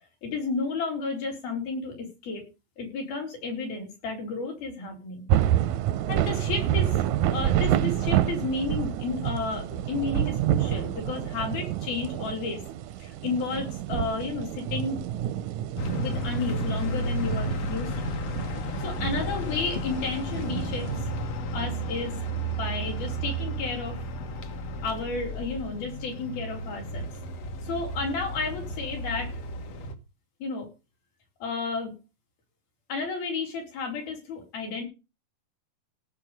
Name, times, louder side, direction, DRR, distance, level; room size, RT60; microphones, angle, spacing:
voice 1, 0.2-1.9 2.2-2.4 2.8-5.2 6.1-12.6 13.0-15.0 16.0-18.1 18.8-20.9 21.5-22.1 22.6-24.0 24.8-27.1 27.6-29.3 30.4-30.7 31.4-31.9 32.9-34.8, left 4 dB, 75° left, 1 dB, 6.2 m, -32 dB
sound 1, 5.3-21.0, right 12 dB, 80° right, 1.7 m, -28 dB
sound 2, 15.8-29.9, equal, 55° left, 2.0 m, -33 dB
17.0 x 7.0 x 5.3 m, 0.29 s
omnidirectional pair, 4.3 m